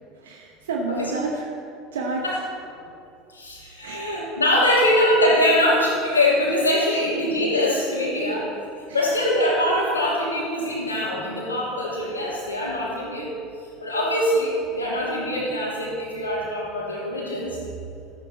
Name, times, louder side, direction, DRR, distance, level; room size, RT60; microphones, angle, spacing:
voice 1, 0.2-1.6 1.9-2.5 2.8-3.0 3.8-4.8 6.9-7.1 8.9-9.1 12.9-13.0, right 3 dB, 75° right, 0 dB, 1.0 m, -32 dB
voice 2, 3.3-8.5 8.9-13.3 13.8-17.6, left 1 dB, 90° left, -4 dB, 2.8 m, -23 dB
14.0 x 8.9 x 4.2 m, 2.4 s
figure-of-eight pair, 75°, 0 cm